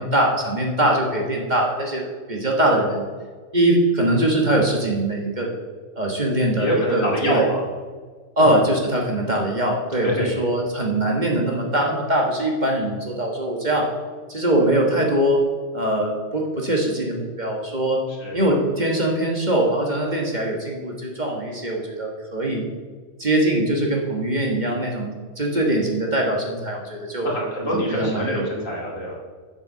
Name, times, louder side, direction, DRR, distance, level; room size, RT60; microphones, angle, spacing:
voice 1, 0.0-3.1 3.5-5.5 6.0-7.5 8.4-13.9 14.3-15.4 15.7-18.0 18.3-22.7 23.2-27.3 27.7-28.5, right 1 dB, 35° right, 0 dB, 1.5 m, -22 dB
voice 2, 6.6-7.6 10.0-10.3 18.2-18.4 27.2-29.2, equal, 70° left, -3 dB, 3.0 m, -25 dB
7.8 x 7.2 x 6.6 m, 1.5 s
omnidirectional pair, 1.4 m